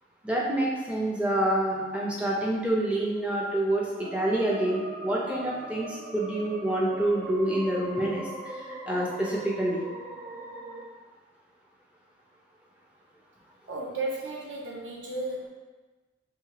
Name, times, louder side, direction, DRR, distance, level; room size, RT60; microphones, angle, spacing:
voice 1, 0.2-9.8, right 1 dB, 5° right, -4 dB, 0.4 m, -27 dB
sound 1, 4.0-10.8, right 1 dB, 40° right, 0.7 m, -40 dB
voice 2, 13.7-15.5, right 2 dB, 80° right, -3 dB, 0.6 m, -34 dB
2.9 x 2.2 x 2.8 m, 1.2 s
head